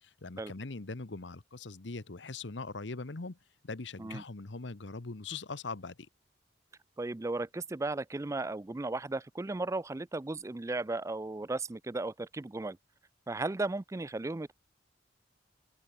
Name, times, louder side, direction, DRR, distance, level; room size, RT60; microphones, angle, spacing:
voice 1, 0.0-3.4 3.6-6.1, left 3 dB, 70° left, 1.1 m, -41 dB
voice 2, 7.0-12.8 13.3-14.5, right 2 dB, 15° right, 0.4 m, -35 dB
head